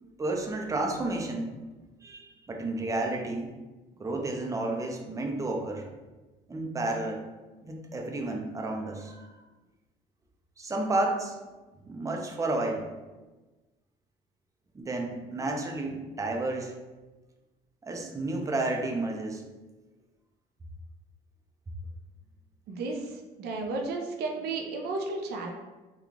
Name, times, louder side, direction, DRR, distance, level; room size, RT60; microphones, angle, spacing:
voice 1, 0.0-1.5 2.0-3.5 4.0-5.8 6.5-7.2 7.6-9.3 10.6-11.3 11.9-12.9 14.7-16.7 17.8-19.4, right 2 dB, 20° right, 1 dB, 0.5 m, -31 dB
voice 2, 22.7-23.1 23.4-25.5, right 3 dB, 70° right, 2 dB, 0.6 m, -33 dB
3.1 x 2.3 x 3.6 m, 1.2 s
cardioid pair, 110°, 17 cm